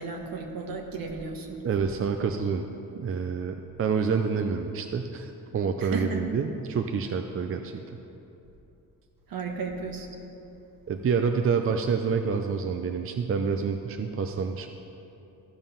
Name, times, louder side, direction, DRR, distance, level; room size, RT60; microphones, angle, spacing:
voice 1, 0.0-1.6 5.8-6.2 9.3-10.1, right 4 dB, 65° right, 3 dB, 1.4 m, -34 dB
voice 2, 1.6-2.6 3.0-8.0 10.9-14.7, right 5 dB, 35° right, 6 dB, 0.6 m, -28 dB
14.5 x 5.3 x 5.6 m, 2.8 s
cardioid pair, 85°, 38 cm